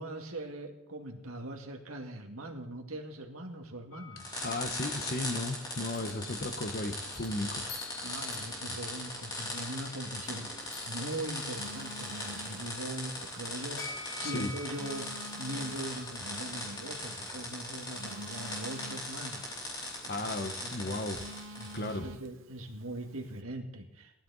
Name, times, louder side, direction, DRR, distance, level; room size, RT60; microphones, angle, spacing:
voice 1, 0.0-4.4 8.0-19.8 20.2-20.3 20.6-20.7 21.6-24.2, right 1 dB, 80° right, 3 dB, 2.1 m, -41 dB
sound 1, 3.9-5.2 5.9-11.8 13.8-16.6, left 4 dB, 75° left, 4.1 m, -49 dB
sound 2, 4.2-21.9, left 1 dB, 20° left, 3.9 m, -40 dB
voice 2, 4.4-7.6 14.2-14.5 20.1-21.2 21.7-22.1, left 2 dB, 45° left, 7 dB, 1.2 m, -35 dB
Telephone, 10.6-23.4, right 1 dB, 60° right, 1.0 m, -51 dB
19.0 x 13.0 x 4.2 m, 0.80 s
head